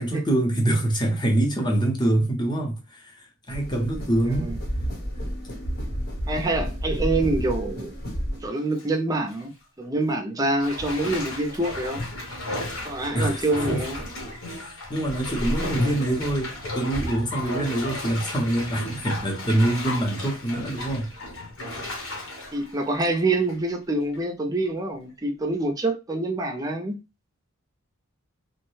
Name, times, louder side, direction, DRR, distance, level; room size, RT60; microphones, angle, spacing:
voice 1, 0.0-4.5 13.1-13.8 14.5-21.1, right 1 dB, 20° left, 0.7 m, -25 dB
sound 1, 3.5-8.5, equal, 45° left, 0.9 m, -31 dB
voice 2, 6.3-7.9 8.4-12.0 12.8-14.0 22.5-27.0, right 2 dB, 15° right, 0.5 m, -26 dB
Bathtub (filling or washing), 8.4-8.8 9.3-9.4 10.6-23.7 24.1-24.2, left 1 dB, 70° left, 1.1 m, -33 dB
3.0 x 2.1 x 3.1 m
head